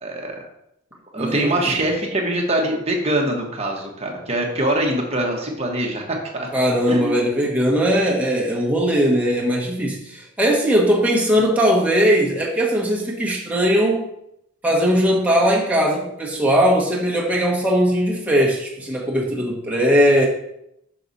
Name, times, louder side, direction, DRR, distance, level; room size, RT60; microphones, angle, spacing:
voice 1, 0.0-0.4 1.1-6.5 6.9-7.2, right 1 dB, 30° right, 0 dB, 1.2 m, -23 dB
voice 2, 1.2-1.5 6.5-14.1 14.6-20.3, equal, 5° right, -4 dB, 1.3 m, -19 dB
6.0 x 5.9 x 4.1 m, 0.80 s
head